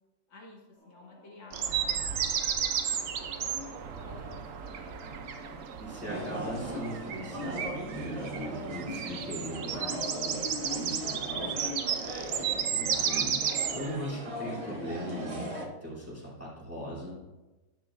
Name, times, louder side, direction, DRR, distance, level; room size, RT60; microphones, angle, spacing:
voice 1, 0.3-2.2 2.6-2.7 3.2-5.6 8.1-8.6 9.7-10.2, left 3 dB, 70° left, -1 dB, 2.1 m, -49 dB
Singing / Musical instrument, 0.7-7.1, left 3 dB, 50° left, 2.3 m, -53 dB
sound 1, 1.5-14.0, right 8 dB, 80° right, 0.7 m, -33 dB
voice 2, 5.8-10.4 10.7-12.0 12.4-17.1, equal, 5° right, -7 dB, 2.9 m, -39 dB
sound 2, 6.1-15.7, equal, 50° right, 0.4 m, -39 dB
9.8 x 9.1 x 2.5 m, 1.1 s
omnidirectional pair, 2.1 m